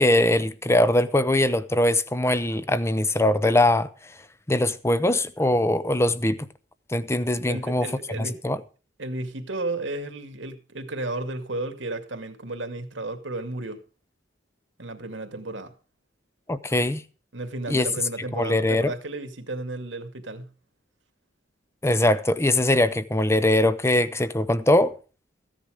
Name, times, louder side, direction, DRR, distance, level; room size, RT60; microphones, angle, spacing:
voice 1, 0.0-3.9 4.5-6.5 6.9-7.9 8.2-8.6 16.5-17.0 17.7-17.9 18.3-18.9 21.8-24.9, left 1 dB, 15° left, 0.8 m, -21 dB
voice 2, 7.4-8.4 9.0-13.8 14.8-15.7 17.3-20.5, right 2 dB, 80° right, 2.4 m, -33 dB
15.0 x 10.0 x 5.0 m
head